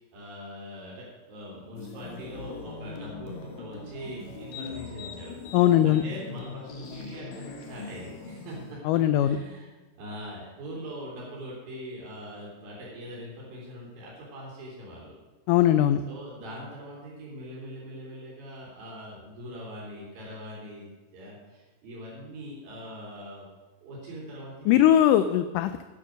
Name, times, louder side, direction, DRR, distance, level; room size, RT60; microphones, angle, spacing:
voice 1, 0.1-15.1 16.0-23.5 23.8-25.0, equal, 70° right, -6 dB, 5.0 m, -42 dB
sound 1, 1.8-8.7, left 4 dB, 60° left, 2.2 m, -41 dB
voice 2, 5.5-6.0 8.9-9.4 15.5-16.0 24.7-25.8, left 12 dB, 90° left, 11 dB, 1.8 m, -20 dB
10.5 x 9.3 x 6.5 m, 1.2 s
omnidirectional pair, 4.3 m